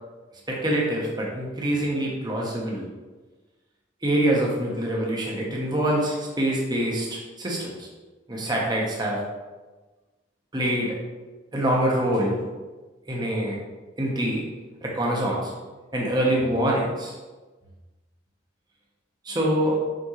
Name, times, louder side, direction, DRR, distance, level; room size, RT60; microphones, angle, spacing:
voice 1, 0.5-2.8 4.0-7.9 8.3-9.2 10.5-10.9 11.5-12.4 13.1-13.5 14.0-14.4 14.8-15.5 15.9-17.1 19.2-19.8, right 1 dB, 20° right, -3 dB, 1.2 m, -25 dB
6.2 x 5.4 x 3.3 m, 1.3 s
head